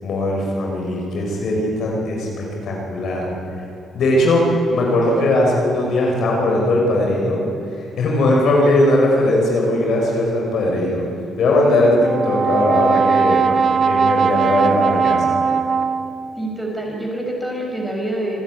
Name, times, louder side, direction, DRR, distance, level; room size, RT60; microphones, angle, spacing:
voice 1, 0.0-3.3 3.9-4.4 4.7-7.4 8.0-11.1 11.4-13.4 13.8-15.4, left 1 dB, 70° left, -1 dB, 5.4 m, -19 dB
Brass instrument, 12.0-16.4, right 5 dB, 45° right, 1.0 m, -19 dB
voice 2, 16.4-18.4, right 1 dB, ahead, -1 dB, 6.1 m, -26 dB
26.5 x 10.5 x 9.6 m, 2.9 s
cardioid pair, 90°, 0 cm